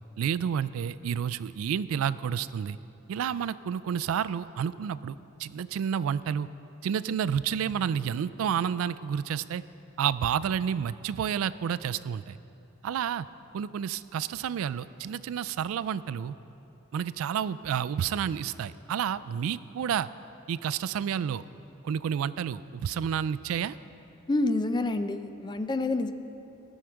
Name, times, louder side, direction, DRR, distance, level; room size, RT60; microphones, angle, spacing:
voice 1, 0.2-2.8 3.1-5.1 5.4-6.5 6.8-9.6 10.0-12.4 12.8-13.3 13.5-16.4 16.9-20.1 20.5-21.4 21.8-23.8, right 8 dB, 85° right, 16 dB, 0.3 m, -30 dB
voice 2, 24.3-26.1, left 2 dB, 20° left, 9 dB, 0.4 m, -28 dB
18.0 x 6.4 x 4.6 m, 2.8 s
head